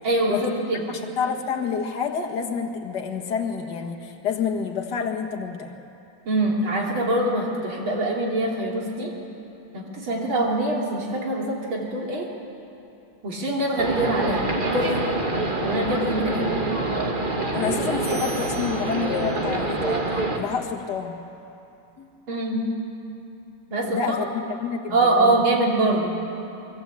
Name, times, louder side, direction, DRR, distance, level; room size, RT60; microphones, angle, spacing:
voice 1, 0.0-0.9 6.3-9.1 9.7-12.3 13.2-14.4 14.7-14.9 15.6-16.5 22.3-22.7 23.7-24.0 24.9-26.1, right 2 dB, 80° right, -1 dB, 4.0 m, -24 dB
voice 2, 0.9-5.7 17.5-20.0 20.3-21.2 22.0-22.1 23.9-25.4, left 6 dB, 55° left, 2 dB, 2.1 m, -28 dB
sound 1, 13.8-20.4, right 2 dB, 25° right, 1.9 m, -25 dB
sound 2, 18.0-19.6, right 1 dB, 65° right, 8.8 m, -41 dB
23.5 x 22.5 x 8.5 m, 2.8 s
omnidirectional pair, 2.2 m